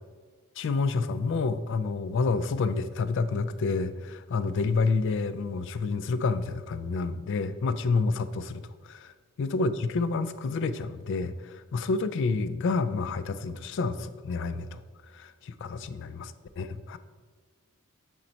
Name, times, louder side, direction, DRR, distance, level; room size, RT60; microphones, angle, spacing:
voice 1, 0.6-9.1 9.4-14.8 15.1-17.0, left 4 dB, 55° left, 13 dB, 0.3 m, -29 dB
7.1 x 3.9 x 4.3 m, 1.5 s
head